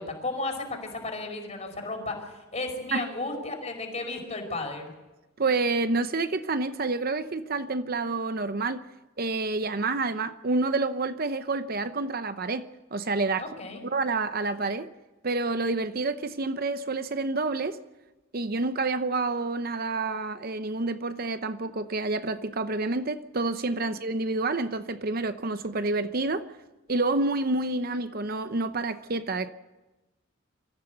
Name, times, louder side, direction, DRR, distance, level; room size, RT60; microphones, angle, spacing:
voice 1, 0.0-4.9 13.4-13.8, left 2 dB, 35° left, 5.1 m, -34 dB
voice 2, 5.4-8.8 9.2-13.5 13.8-14.9 15.2-17.8 18.3-26.5 26.9-29.5, right 3 dB, 50° right, 0.8 m, -28 dB
25.5 x 14.5 x 8.0 m
head